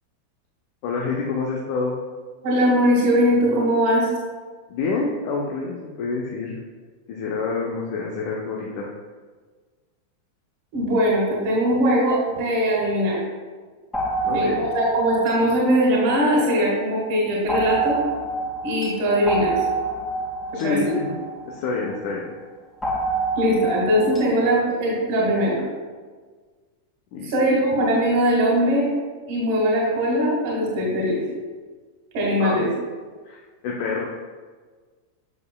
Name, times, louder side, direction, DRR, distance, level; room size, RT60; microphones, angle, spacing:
voice 1, 0.8-2.0 4.7-6.6 7.1-8.9 14.2-14.6 20.5-21.2 21.5-22.2 27.1-27.3 32.4-32.6 33.2-34.0, left 4 dB, 45° left, -1 dB, 0.8 m, -27 dB
voice 2, 2.4-4.1 10.7-13.2 14.3-18.0 18.6-19.6 20.5-20.8 23.4-25.6 27.2-28.9 29.3-31.2 32.1-32.7, equal, 50° right, -3 dB, 1.8 m, -20 dB
sound 1, 13.9-16.7 17.5-22.0 22.8-24.6, right 2 dB, 10° left, 1.9 m, -28 dB
8.5 x 6.8 x 2.3 m, 1.5 s
figure-of-eight pair, 90°, 0 cm